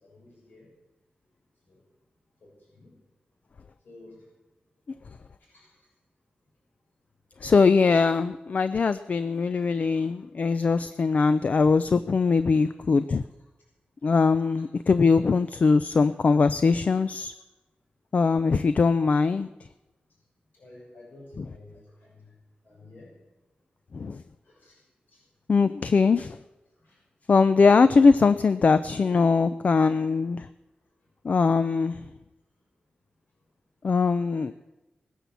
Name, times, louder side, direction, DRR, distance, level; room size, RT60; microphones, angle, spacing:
voice 1, 0.0-0.7 1.7-1.8 2.4-2.5 2.8-2.9 3.8-4.2 5.5-5.7 7.9-8.0 20.5-21.7 22.0-22.2 22.6-23.1 24.4-24.8 25.1-25.2 26.8-27.0, left 2 dB, 75° left, -3 dB, 6.3 m, -51 dB
voice 2, 7.4-13.2 14.0-17.3 18.1-19.5 21.4-21.5 23.9-24.2 25.5-26.4 27.3-30.5 31.2-32.0 33.8-34.5, left 4 dB, 50° left, 12 dB, 0.4 m, -21 dB
19.0 x 10.0 x 7.0 m, 1.1 s
wide cardioid pair, 145°, 3 cm